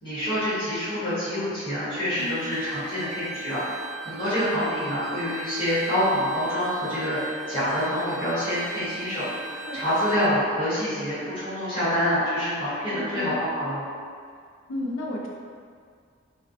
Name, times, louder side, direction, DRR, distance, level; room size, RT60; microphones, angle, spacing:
voice 1, 0.0-13.8, equal, 25° left, -15 dB, 1.0 m, -27 dB
Bowed string instrument, 2.1-10.3, right 4 dB, 75° right, 0.3 m, -39 dB
voice 2, 12.9-13.4 14.7-15.3, left 2 dB, 90° left, -1 dB, 0.4 m, -32 dB
2.4 x 2.1 x 2.5 m, 2.1 s
head